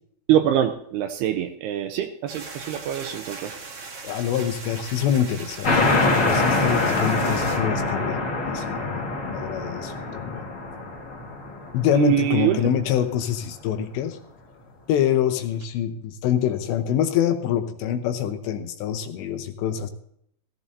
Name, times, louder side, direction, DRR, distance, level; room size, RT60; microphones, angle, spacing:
voice 1, 0.3-3.6 11.9-12.6, right 11 dB, 80° right, 8 dB, 2.5 m, -24 dB
sound 1, 2.3-7.6, right 4 dB, 50° right, 1.9 m, -39 dB
voice 2, 4.0-10.5 11.7-14.2 14.9-19.9, left 9 dB, 80° left, 8 dB, 3.0 m, -25 dB
sound 2, 5.6-12.8, left 2 dB, 35° left, 2.9 m, -25 dB
15.5 x 15.0 x 2.7 m, 0.69 s
omnidirectional pair, 5.2 m